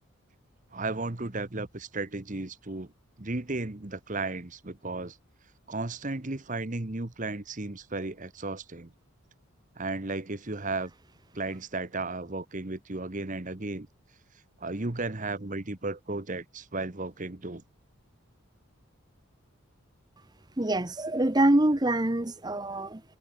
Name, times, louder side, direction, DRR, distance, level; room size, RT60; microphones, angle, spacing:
voice 1, 0.7-2.9 3.2-5.2 5.7-8.9 9.8-10.9 11.3-13.9 14.6-17.6, right 2 dB, 35° right, 1.2 m, -34 dB
voice 2, 20.6-23.0, right 1 dB, 20° right, 0.9 m, -25 dB
head